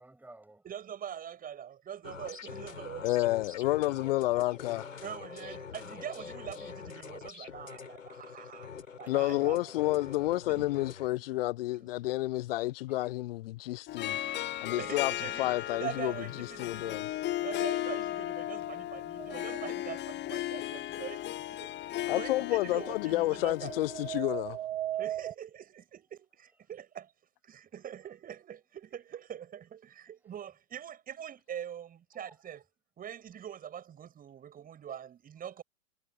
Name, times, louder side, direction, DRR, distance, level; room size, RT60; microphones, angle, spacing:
voice 1, 0.0-0.6 9.1-9.2 12.9-13.1 13.9-14.8 16.7-16.9 19.2-19.3 32.1-32.3, right 2 dB, 5° right, 6.5 m, -56 dB
voice 2, 0.6-3.3 5.0-8.7 9.0-9.7 10.5-10.7 11.7-11.9 14.8-23.7 25.0-27.1 27.4-32.6 33.0-35.6, right 9 dB, 20° right, 5.9 m, -43 dB
sound 1, 2.0-11.1, left 6 dB, 70° left, 4.4 m, -45 dB
voice 3, 3.0-4.8 9.1-14.2 14.6-15.1 15.4-16.1 16.4-17.1 22.1-24.6, left 17 dB, 45° left, 1.1 m, -30 dB
Harp, 13.9-24.2, left 14 dB, 25° left, 2.3 m, -36 dB
sound 2, 19.2-19.9 23.2-25.3, right 12 dB, 55° right, 1.7 m, -37 dB
figure-of-eight pair, 100°, 40 cm